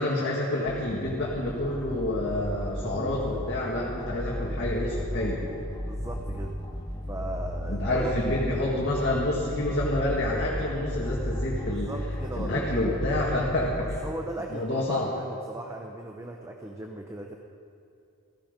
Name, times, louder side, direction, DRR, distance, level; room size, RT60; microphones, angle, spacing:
voice 1, 0.0-5.5 7.7-11.9 12.4-14.0 14.5-15.1, left 1 dB, 50° left, -5 dB, 2.0 m, -28 dB
sound 1, 0.7-14.1, equal, 20° left, 1.6 m, -34 dB
voice 2, 2.8-3.5 5.8-6.5 7.1-8.1 11.6-12.7 13.8-17.4, right 1 dB, 15° right, 2 dB, 0.8 m, -38 dB
15.0 x 15.0 x 5.3 m, 2.6 s
head